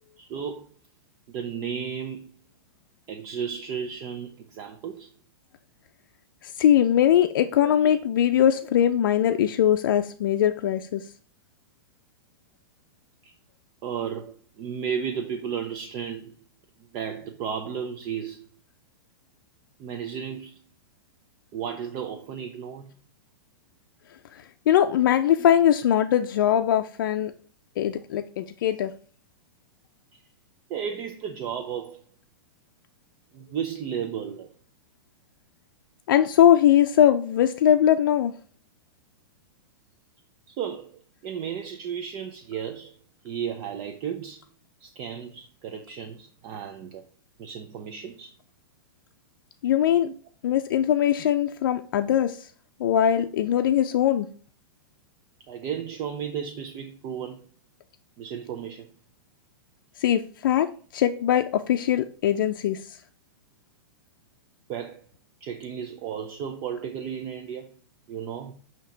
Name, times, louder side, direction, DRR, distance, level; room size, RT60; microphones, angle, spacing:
voice 1, 0.2-0.7 1.3-2.3 3.1-5.1 7.6-7.7 13.2-13.3 13.8-16.4 16.9-18.4 19.8-20.6 21.5-22.9 25.4-25.6 30.1-30.2 30.7-32.0 33.3-34.5 40.5-42.9 43.2-44.4 44.8-47.0 47.4-48.3 50.0-50.1 50.9-51.0 55.5-57.4 58.2-58.9 64.7-65.0 65.4-67.7 68.1-68.5, right 8 dB, 30° right, 0.6 m, -34 dB
voice 2, 6.6-11.0 24.7-27.3 27.8-28.9 36.1-38.3 49.6-50.1 50.4-52.4 52.8-54.3 60.0-60.7 60.9-62.8, left 10 dB, 65° left, 0.5 m, -21 dB
8.6 x 2.9 x 4.5 m
hypercardioid pair, 150°, 12 cm